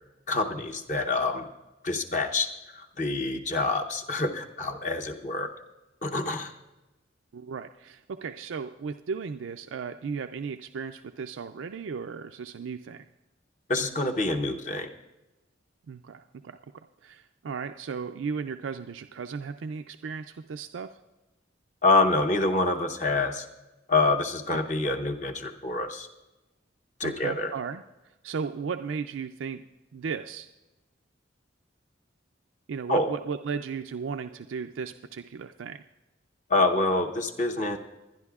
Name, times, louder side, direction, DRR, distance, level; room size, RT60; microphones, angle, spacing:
voice 1, 0.3-1.5 1.8-2.5 2.7-5.5 6.0-6.5 13.7-14.9 21.8-23.5 23.9-26.1 27.0-27.5 32.9-33.1 36.5-37.8, left 2 dB, 40° left, 4 dB, 0.8 m, -26 dB
voice 2, 7.3-13.1 15.9-16.6 17.0-20.9 24.5-24.6 27.0-27.8 28.2-29.6 29.9-30.5 32.7-35.8, right 5 dB, 90° right, 7 dB, 0.4 m, -35 dB
24.0 x 10.5 x 2.4 m, 1.1 s
head